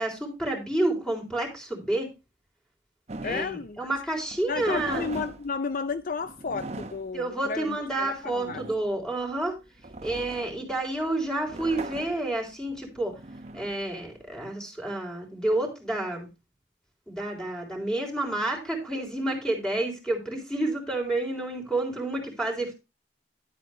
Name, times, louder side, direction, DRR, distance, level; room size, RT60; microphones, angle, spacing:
voice 1, 0.0-2.1 3.2-5.1 7.1-9.5 10.0-13.1 13.5-16.3 17.1-22.7, right 2 dB, 5° left, 3.7 m, -29 dB
sound 1, 3.1-14.5, right 2 dB, 40° right, 1.0 m, -41 dB
voice 2, 3.2-3.8 4.5-8.6, left 4 dB, 50° left, 0.5 m, -32 dB
11.0 x 8.3 x 3.2 m
head